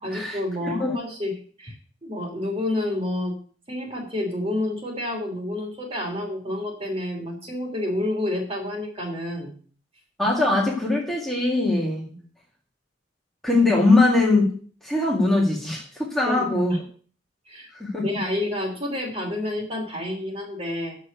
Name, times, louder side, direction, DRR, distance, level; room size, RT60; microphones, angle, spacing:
voice 1, 0.0-1.3 1.6-1.7 2.0-3.3 3.7-9.5 12.1-12.3 16.2-16.8 17.5-17.7 18.0-21.0, left 1 dB, 30° right, 1 dB, 2.9 m, -29 dB
voice 2, 0.6-0.9 10.2-12.0 13.4-14.6 14.8-16.7 17.7-18.0, left 2 dB, ahead, -4 dB, 2.1 m, -21 dB
7.3 x 6.6 x 8.0 m, 0.43 s
head